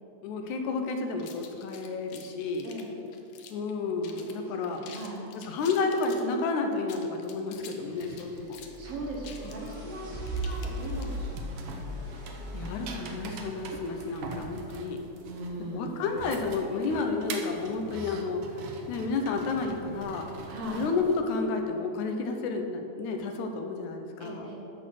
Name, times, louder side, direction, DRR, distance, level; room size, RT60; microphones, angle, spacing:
voice 1, 0.2-2.7 3.5-4.8 5.5-8.6 12.5-15.0 15.7-20.3 20.7-24.5, left 4 dB, 90° left, 4 dB, 2.2 m, -31 dB
sound 1, 1.2-3.7 4.0-4.4 4.6-6.3 6.8-11.3, left 7 dB, 70° left, 1.5 m, -48 dB
voice 2, 2.6-3.0 4.2-5.2 7.8-12.0 15.2-16.0 20.5-20.9 24.2-24.6, right 1 dB, 60° right, -2 dB, 2.0 m, -40 dB
sound 2, 7.8-21.2, right 3 dB, 80° right, 1.1 m, -44 dB
sound 3, 8.5-14.6, equal, 35° right, 2.7 m, -38 dB
12.5 x 4.3 x 5.8 m, 2.8 s
omnidirectional pair, 3.3 m